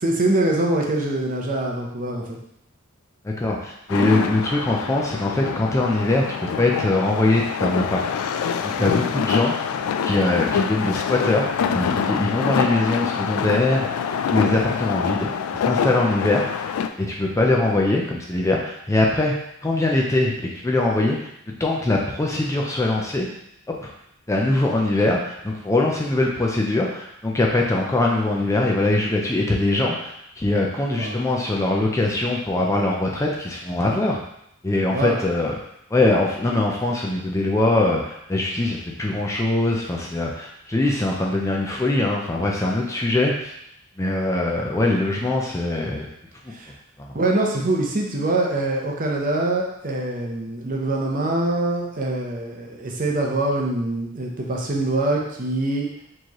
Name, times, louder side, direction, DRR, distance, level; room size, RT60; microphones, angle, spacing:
voice 1, 0.0-2.4 8.8-8.9 31.0-31.2 34.9-35.2 46.5-46.7 47.1-55.9, right 2 dB, 40° right, 0 dB, 0.6 m, -24 dB
voice 2, 3.2-8.0 8.6-9.5 10.0-14.0 14.3-16.7 17.0-19.3 19.6-21.2 21.6-23.3 23.7-23.9 24.3-34.2 34.6-35.6 35.9-43.5 44.0-46.1 47.0-47.2, left 2 dB, 15° left, -1 dB, 0.4 m, -22 dB
sound 1, 3.9-16.9, left 7 dB, 85° left, 0.3 m, -25 dB
4.4 x 3.1 x 2.9 m, 0.76 s
head